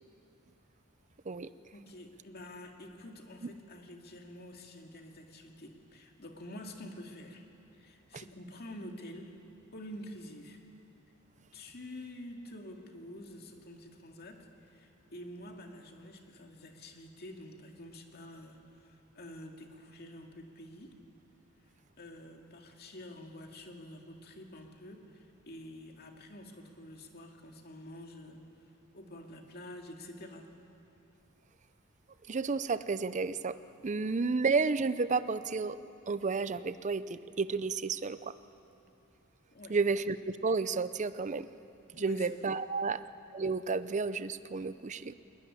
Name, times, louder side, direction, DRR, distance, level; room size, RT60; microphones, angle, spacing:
voice 1, 1.7-7.4 7.7-9.3 9.7-10.6 11.5-20.9 22.0-28.4 28.9-30.5 39.5-39.8 41.9-42.6, left 1 dB, 50° left, 3 dB, 2.3 m, -48 dB
voice 2, 32.3-33.6 33.8-35.8 36.1-38.3 39.7-41.5 42.0-43.0 43.3-45.1, right 4 dB, 35° right, 14 dB, 0.6 m, -31 dB
21.5 x 19.5 x 9.9 m, 2.8 s
head